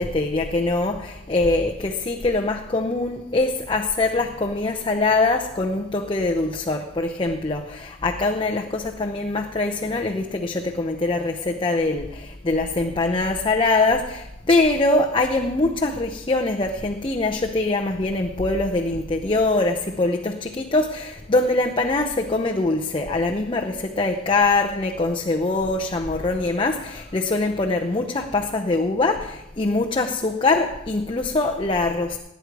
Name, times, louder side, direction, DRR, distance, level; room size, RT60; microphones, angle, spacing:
voice 1, 0.0-32.2, left 2 dB, 25° left, 0.7 m, -23 dB
18.5 x 9.3 x 4.8 m
head